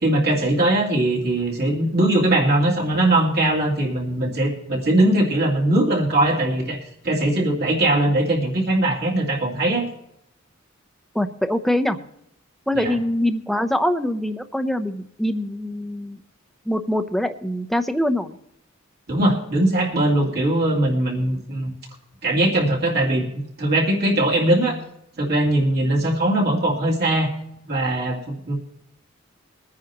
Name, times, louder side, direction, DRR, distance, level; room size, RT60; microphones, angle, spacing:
voice 1, 0.0-6.8 7.0-9.9 12.7-13.0 19.1-21.7 22.2-23.3 23.6-24.8 25.2-27.3 27.6-28.5, right 1 dB, 50° right, -3 dB, 2.9 m, -20 dB
voice 2, 11.1-12.0 12.7-16.2 16.7-18.4, left 1 dB, ahead, 7 dB, 0.7 m, -23 dB
22.5 x 9.6 x 3.0 m, 0.75 s
head